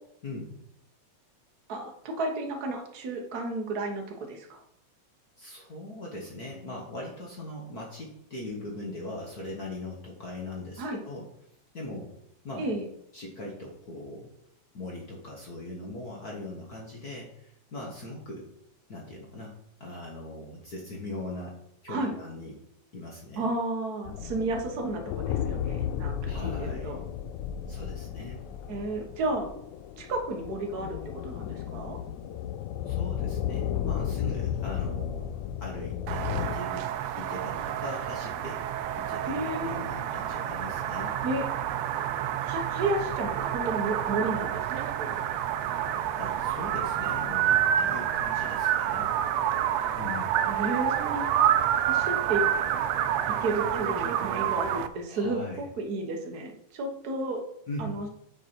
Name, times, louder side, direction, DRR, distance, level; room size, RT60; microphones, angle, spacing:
voice 1, 0.2-0.5 5.4-11.3 11.7-12.1 12.4-12.7 13.1-14.3 14.7-18.5 18.9-21.6 21.8-22.5 22.9-23.5 26.3-26.9 27.7-28.4 32.9-41.2 46.2-49.1 50.0-50.4 55.1-55.7 57.7-57.9, left 2 dB, 50° left, -2 dB, 1.1 m, -40 dB
voice 2, 1.7-4.6 10.8-11.0 12.6-12.9 21.9-22.1 23.4-27.0 28.7-29.5 30.0-32.0 39.2-39.8 41.2-41.5 42.4-45.2 50.5-51.2 51.9-52.4 53.4-57.4 57.8-58.1, right 2 dB, 65° right, 3 dB, 0.9 m, -32 dB
sound 1, 24.0-36.5, left 9 dB, 85° left, 2.0 m, -33 dB
sound 2, 36.1-54.9, right 10 dB, 90° right, 1.4 m, -28 dB
9.2 x 5.2 x 4.4 m, 0.77 s
omnidirectional pair, 3.5 m